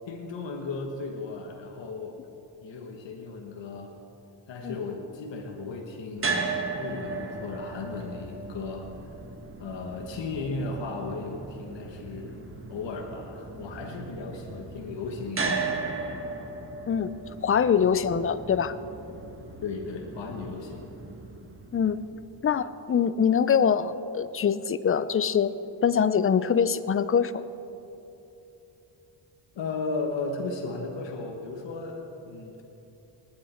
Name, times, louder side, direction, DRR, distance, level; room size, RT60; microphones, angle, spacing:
voice 1, 0.1-2.2 2.6-3.9 4.5-6.5 6.8-8.9 9.6-12.4 12.7-15.9 19.6-20.9 29.5-32.6, left 3 dB, 65° left, 2 dB, 1.5 m, -35 dB
sound 1, 6.2-22.3, right 4 dB, 25° right, 1.6 m, -36 dB
voice 2, 17.4-18.7 21.7-22.0 22.4-25.5 25.8-27.4, left 7 dB, 30° left, 14 dB, 0.5 m, -24 dB
19.5 x 9.4 x 4.4 m, 3.0 s
cardioid pair, 70°, 48 cm